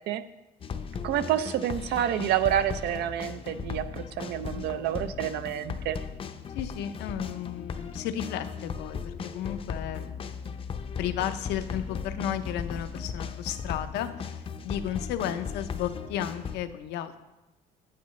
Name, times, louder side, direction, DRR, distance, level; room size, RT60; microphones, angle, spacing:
sound 1, 0.6-16.6, left 6 dB, 35° left, 0.5 m, -37 dB
voice 1, 1.0-6.0, right 11 dB, 75° right, 12 dB, 0.5 m, -28 dB
voice 2, 4.2-4.7 6.5-10.1 11.0-17.2, left 10 dB, 80° left, 9 dB, 0.6 m, -34 dB
8.5 x 8.5 x 3.1 m, 1.0 s
cardioid pair, 110°, 17 cm